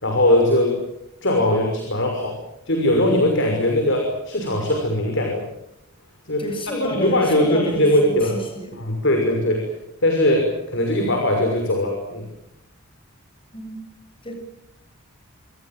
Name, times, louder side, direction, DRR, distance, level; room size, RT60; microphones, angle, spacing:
voice 1, 0.0-0.8 1.2-2.3 2.7-5.4 6.3-6.5 6.8-8.4 8.8-9.7 10.0-12.3, left 1 dB, 55° left, 3 dB, 6.1 m, -20 dB
voice 2, 6.4-8.8 13.5-13.8 14.2-14.3, equal, 25° left, 6 dB, 7.8 m, -30 dB
27.5 x 26.0 x 7.6 m, 0.82 s
head